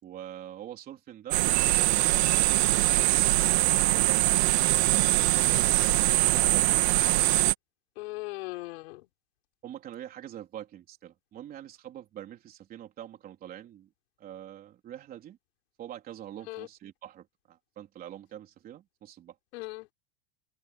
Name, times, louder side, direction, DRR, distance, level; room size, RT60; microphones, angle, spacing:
voice 1, 0.0-1.5 2.0-4.4 4.8-7.3 9.6-13.9 14.2-15.4 15.8-19.4, right 11 dB, 25° right, 3.8 m, -44 dB
sound 1, 1.3-7.5, right 18 dB, 60° right, 1.6 m, -23 dB
voice 2, 8.0-9.1 16.5-16.7 19.5-19.9, left 21 dB, 60° left, 6.1 m, -38 dB
open air
supercardioid pair, 165°, 36 cm